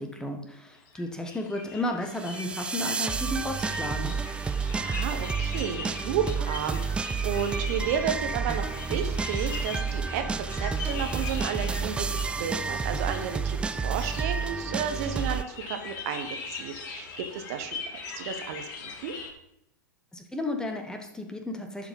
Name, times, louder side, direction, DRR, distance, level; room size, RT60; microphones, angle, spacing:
voice 1, 0.0-4.2 20.1-21.9, left 1 dB, 5° left, 4 dB, 1.4 m, -33 dB
sound 1, 0.7-19.3, left 4 dB, 40° left, 2.0 m, -41 dB
sound 2, 2.1-15.4, right 5 dB, 10° right, 0.3 m, -30 dB
voice 2, 4.6-17.8 18.1-19.1, right 7 dB, 50° right, 6 dB, 1.2 m, -32 dB
11.0 x 4.9 x 5.4 m, 0.83 s
figure-of-eight pair, 100°, 10 cm